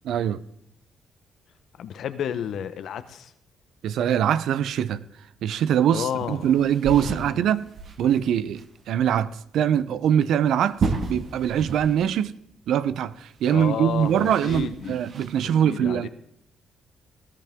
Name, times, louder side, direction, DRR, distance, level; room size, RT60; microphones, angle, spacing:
voice 1, 0.0-0.4 3.8-5.0 5.4-7.7 8.0-12.3 12.7-16.1, right 9 dB, 75° right, 0.6 m, -23 dB
voice 2, 1.8-3.3 5.9-6.5 7.0-7.4 13.5-15.0 15.4-16.1, left 9 dB, 70° left, 0.9 m, -32 dB
sound 1, 6.2-8.3 8.5-8.6 9.0-9.1 10.5-12.2 12.4-12.5 13.4-15.4, right 4 dB, 55° right, 1.6 m, -32 dB
19.0 x 13.0 x 3.6 m
cardioid pair, 90°, 0 cm